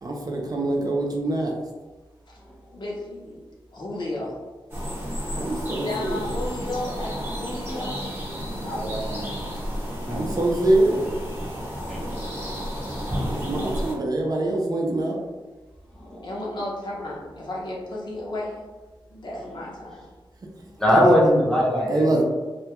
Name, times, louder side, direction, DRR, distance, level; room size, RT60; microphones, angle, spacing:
voice 1, 0.0-1.6 5.3-6.3 8.5-9.3 10.1-11.0 13.3-15.2 21.9-22.2, right 2 dB, 45° right, -1 dB, 0.5 m, -25 dB
voice 2, 2.7-3.4 3.7-4.4 5.8-8.0 8.6-8.8 9.3-9.5 16.2-18.6 19.1-20.0, left 1 dB, 55° left, -4 dB, 0.7 m, -33 dB
sound 1, 4.7-13.9, equal, 25° right, 0.8 m, -31 dB
voice 3, 10.0-10.4 11.9-12.3 15.9-16.3 20.8-22.2, equal, 5° left, -5 dB, 0.7 m, -21 dB
2.2 x 2.2 x 2.9 m, 1.2 s
wide cardioid pair, 100°, 9 cm